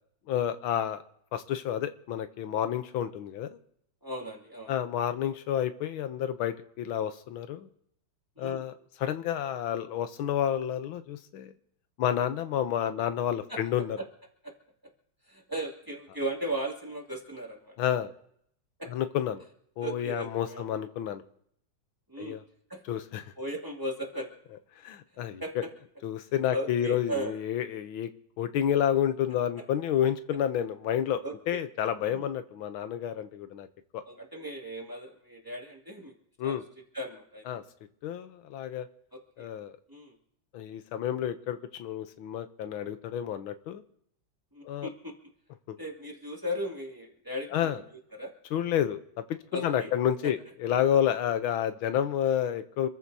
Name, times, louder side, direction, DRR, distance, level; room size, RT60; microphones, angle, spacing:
voice 1, 0.3-1.0 1.3-3.5 4.7-7.7 8.4-8.7 9.0-11.5 12.0-14.0 17.8-18.1 18.9-19.4 19.8-21.2 22.2-22.4 22.9-23.3 24.8-25.6 26.0-28.1 28.4-33.7 33.9-34.0 36.4-36.6 37.5-37.6 38.0-38.9 39.4-39.8 40.5-43.8 44.6-44.9 45.7-45.8 47.5-47.8 48.5-52.9, left 10 dB, 85° left, 10 dB, 1.7 m, -30 dB
voice 2, 4.0-4.7 8.4-8.6 13.5-13.6 14.0-14.1 14.4-14.5 15.3-17.7 18.8-18.9 19.8-20.6 22.1-22.3 22.7-22.8 23.4-24.3 25.4-25.7 26.5-27.3 31.2-31.3 32.1-32.3 34.1-36.1 36.4-36.6 36.9-37.5 39.1-39.5 39.9-40.1 44.5-45.1 45.8-47.7 48.1-48.3 49.5-49.9, equal, 10° right, -1 dB, 2.4 m, -36 dB
27.5 x 14.5 x 2.8 m, 0.70 s
omnidirectional pair, 2.2 m